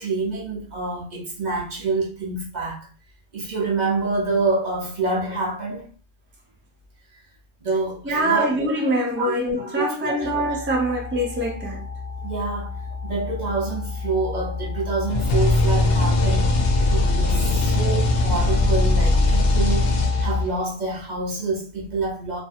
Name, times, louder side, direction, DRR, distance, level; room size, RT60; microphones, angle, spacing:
voice 1, 0.0-2.8 3.3-5.9 7.6-8.5 9.2-9.3 9.7-10.3 12.2-12.7 13.0-16.6 16.9-22.4, right 3 dB, 45° right, 0.7 m, -27 dB
voice 2, 8.1-11.9, right 1 dB, 15° right, 0.4 m, -24 dB
sound 1, 10.2-20.5, left 4 dB, 15° left, 0.7 m, -28 dB
sound 2, 15.1-20.6, left 2 dB, 85° left, 0.9 m, -20 dB
2.7 x 2.5 x 2.4 m
omnidirectional pair, 1.2 m